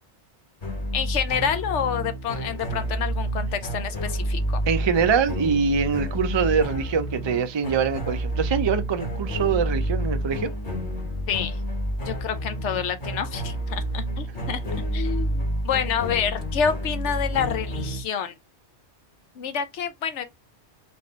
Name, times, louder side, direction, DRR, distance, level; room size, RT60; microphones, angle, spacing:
sound 1, 0.6-18.0, equal, 45° left, 1.4 m, -29 dB
voice 1, 0.9-4.6 11.3-11.6 12.0-14.6 14.9-18.4 19.3-20.2, left 7 dB, 85° left, 1.1 m, -28 dB
voice 2, 4.7-10.5, right 6 dB, 40° right, 0.4 m, -24 dB
4.7 x 2.5 x 4.2 m
omnidirectional pair, 1.2 m